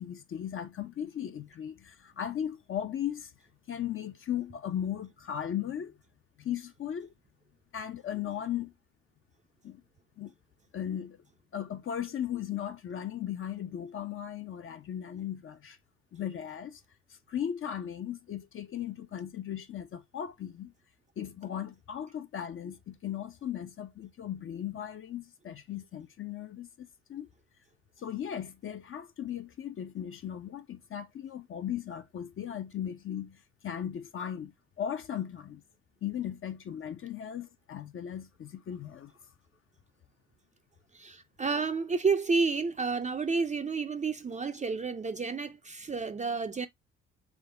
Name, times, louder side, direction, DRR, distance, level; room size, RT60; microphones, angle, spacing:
voice 1, 0.0-3.3 3.7-6.0 6.4-7.1 7.7-8.7 9.6-9.8 10.2-10.3 10.7-11.2 11.5-15.8 16.1-16.8 17.1-20.7 21.2-27.3 28.0-35.6 36.0-39.1, left 10 dB, 40° left, 0.6 m, -37 dB
voice 2, 40.9-46.7, right 4 dB, 25° right, 0.5 m, -30 dB
3.8 x 3.4 x 3.3 m
hypercardioid pair, 50°, 32 cm